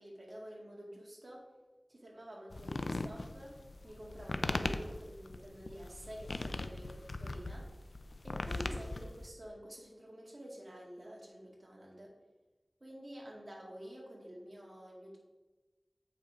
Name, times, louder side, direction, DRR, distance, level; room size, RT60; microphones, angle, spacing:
voice 1, 0.0-1.5 1.9-3.6 3.8-7.7 8.2-12.1 12.8-15.2, equal, 50° right, -3 dB, 2.1 m, -49 dB
sound 1, 2.5-9.3, left 2 dB, 80° left, 0.5 m, -39 dB
8.0 x 5.5 x 4.9 m, 1.2 s
wide cardioid pair, 55°, 0 cm